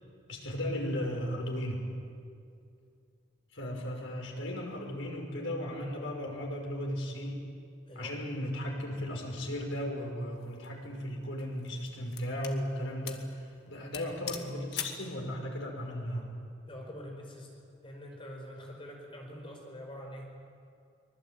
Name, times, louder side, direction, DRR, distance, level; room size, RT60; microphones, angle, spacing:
voice 1, 0.3-1.8 3.5-7.4 7.9-16.4, equal, 85° left, 1 dB, 5.6 m, -36 dB
sound 1, 10.4-10.7 11.4-12.6 13.1-13.3 13.6-13.7 13.9-15.1, left 8 dB, 55° left, 2.0 m, -41 dB
voice 2, 16.7-17.5 17.8-20.4, equal, 25° left, 1 dB, 4.9 m, -45 dB
24.5 x 20.5 x 9.0 m, 2.4 s
head